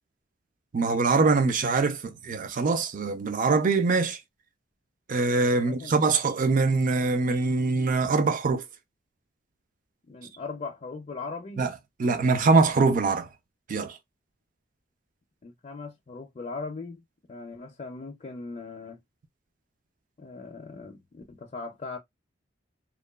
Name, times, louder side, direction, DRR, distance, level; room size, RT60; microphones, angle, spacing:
voice 1, 0.7-4.2 5.1-8.6 11.6-11.7 12.0-13.3 13.7-14.0, right 3 dB, 45° right, 0.4 m, -23 dB
voice 2, 5.5-5.9 10.1-11.6 15.4-17.0 17.3-19.0 20.2-22.0, left 4 dB, 35° left, 0.4 m, -39 dB
2.9 x 2.1 x 2.2 m
head